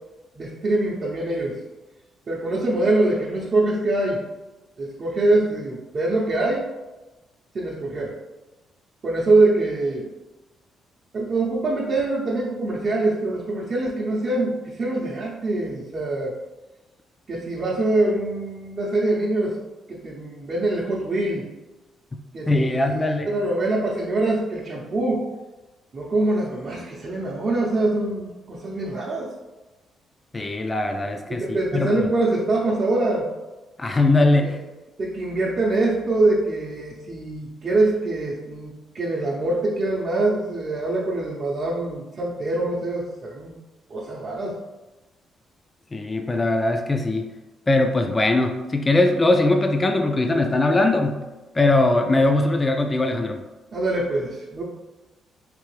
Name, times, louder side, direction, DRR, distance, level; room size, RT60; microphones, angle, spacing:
voice 1, 0.3-1.6 2.3-4.2 4.8-6.7 7.5-8.1 9.0-10.1 11.1-16.3 17.3-19.6 19.9-21.5 22.3-25.3 25.9-29.3 31.3-33.3 34.4-34.5 35.0-43.5 43.9-44.6 53.7-54.6, right 2 dB, 45° right, -5 dB, 0.7 m, -24 dB
voice 2, 22.5-23.4 30.3-31.9 33.8-34.6 45.9-47.3 47.7-51.2 51.5-53.4, left 2 dB, 25° left, 4 dB, 0.4 m, -21 dB
3.3 x 2.9 x 3.2 m, 1.1 s
cardioid pair, 90°, 0 cm